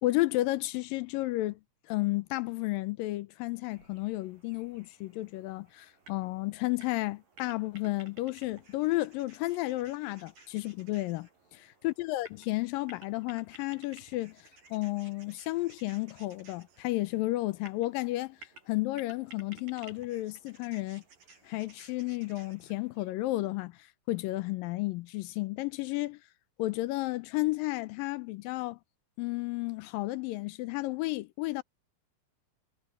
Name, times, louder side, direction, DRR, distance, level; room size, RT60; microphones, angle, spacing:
voice 1, 0.0-1.6 1.9-11.3 11.8-14.4 14.7-18.4 18.7-21.0 21.5-23.7 24.1-26.2 26.6-28.8 29.2-31.6, left 19 dB, 85° left, 2.4 m, -32 dB
sound 1, 3.6-23.1, right 1 dB, 70° right, 7.5 m, -57 dB
omnidirectional pair, 4.1 m